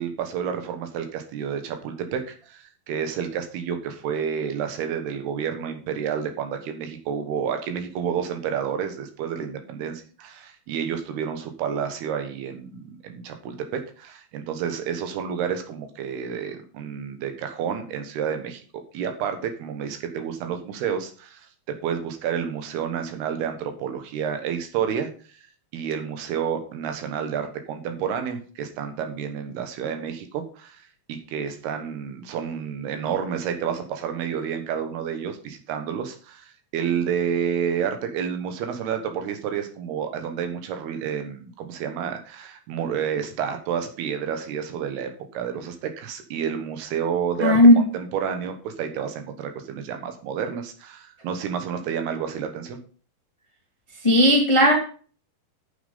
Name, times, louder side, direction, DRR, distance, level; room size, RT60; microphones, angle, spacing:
voice 1, 0.0-21.5 21.8-25.1 25.7-30.8 31.1-47.6 47.9-52.8, right 7 dB, 85° right, 6 dB, 3.4 m, -30 dB
voice 2, 47.4-47.8 54.0-54.7, left 1 dB, 10° left, 1 dB, 1.3 m, -15 dB
9.5 x 7.1 x 5.4 m, 0.40 s
omnidirectional pair, 4.5 m